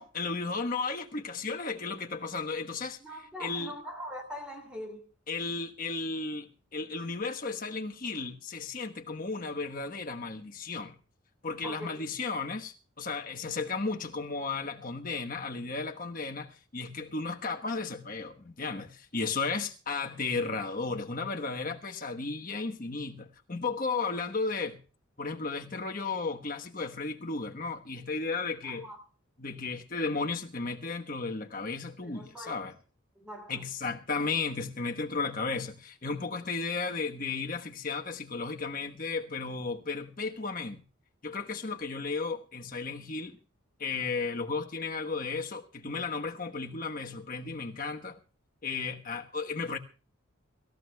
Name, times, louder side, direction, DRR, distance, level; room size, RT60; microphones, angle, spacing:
voice 1, 0.0-3.7 5.3-11.0 11.4-24.8 25.2-28.9 29.4-32.8 33.5-40.8 41.2-43.4 43.8-48.2 48.6-49.8, left 4 dB, 40° left, 1.2 m, -34 dB
voice 2, 3.0-5.0 11.6-12.0 28.8-29.0 32.1-32.5 33.2-33.6, equal, 5° right, 2.7 m, -41 dB
24.5 x 14.5 x 2.3 m
head